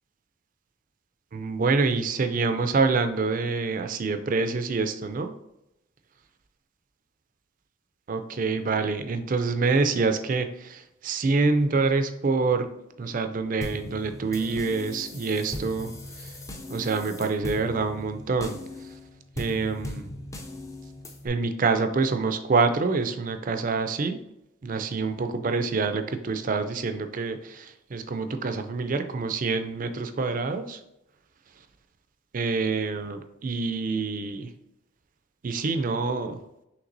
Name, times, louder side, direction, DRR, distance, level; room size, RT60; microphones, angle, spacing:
voice 1, 1.3-5.3 8.1-12.7 13.0-15.9 16.2-16.3 16.7-18.6 19.4-20.1 21.2-24.2 24.6-30.8 32.3-34.5 35.4-36.4, right 4 dB, 40° right, 8 dB, 0.4 m, -26 dB
sound 1, 13.6-21.3, left 1 dB, 15° left, 0.4 m, -39 dB
5.9 x 3.2 x 2.6 m, 0.86 s
head